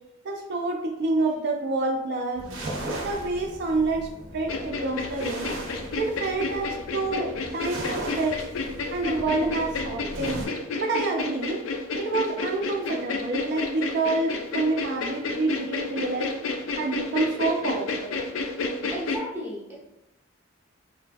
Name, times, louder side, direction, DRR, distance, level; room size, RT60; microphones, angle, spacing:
voice 1, 0.2-2.5 3.0-5.5 6.0-8.5 8.9-10.4 10.8-11.6 12.0-16.3 16.8-18.2, right 3 dB, 55° right, 2 dB, 0.4 m, -27 dB
sound 1, 2.3-10.5, right 1 dB, 85° right, 0.7 m, -37 dB
sound 2, 4.5-19.2, left 3 dB, 85° left, 0.4 m, -31 dB
voice 2, 18.9-19.8, equal, 10° right, -5 dB, 0.6 m, -34 dB
3.0 x 2.3 x 2.5 m, 0.87 s
head